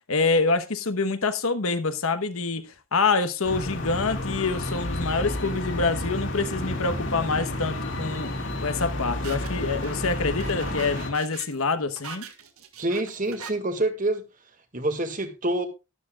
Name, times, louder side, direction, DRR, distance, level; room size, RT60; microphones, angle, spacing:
voice 1, 0.1-8.3 8.6-12.2, left 4 dB, 75° left, 1.1 m, -26 dB
sound 1, 3.4-11.1, left 1 dB, 55° left, 2.3 m, -31 dB
sound 2, 8.5-13.5, right 6 dB, 80° right, 1.8 m, -43 dB
voice 2, 12.8-14.2 14.7-15.7, right 1 dB, 35° right, 1.8 m, -26 dB
12.5 x 12.0 x 2.4 m
head